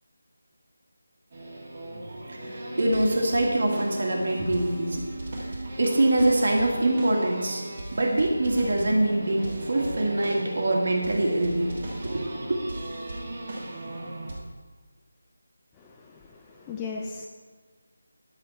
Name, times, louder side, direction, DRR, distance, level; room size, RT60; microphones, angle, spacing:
sound 1, 1.3-14.4, right 1 dB, 25° right, 1.6 m, -36 dB
voice 1, 2.1-5.1 5.4-7.6 7.9-11.7 12.0-12.6, right 1 dB, 45° right, 0 dB, 1.8 m, -24 dB
voice 2, 15.8-17.3, left 4 dB, 10° left, -1 dB, 0.4 m, -37 dB
10.5 x 8.2 x 4.4 m, 1.5 s
figure-of-eight pair, 180°, 0 cm